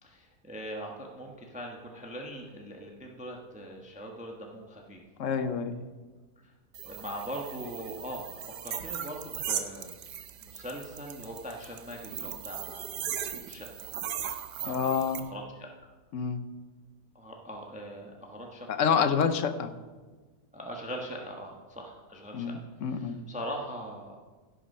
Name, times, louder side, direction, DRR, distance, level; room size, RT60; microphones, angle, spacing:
voice 1, 0.0-5.4 6.8-8.3 8.6-10.0 10.4-13.9 14.6-15.7 17.1-18.7 19.3-19.4 20.5-22.6 22.8-24.2, equal, 5° right, 1 dB, 1.1 m, -41 dB
voice 2, 5.2-5.8 14.7-15.2 16.1-16.4 18.7-19.7 22.3-23.2, left 6 dB, 55° left, 10 dB, 1.0 m, -28 dB
sound 1, 6.7-15.2, right 9 dB, 85° right, 1.4 m, -38 dB
16.5 x 6.4 x 5.5 m, 1.3 s
omnidirectional pair, 1.8 m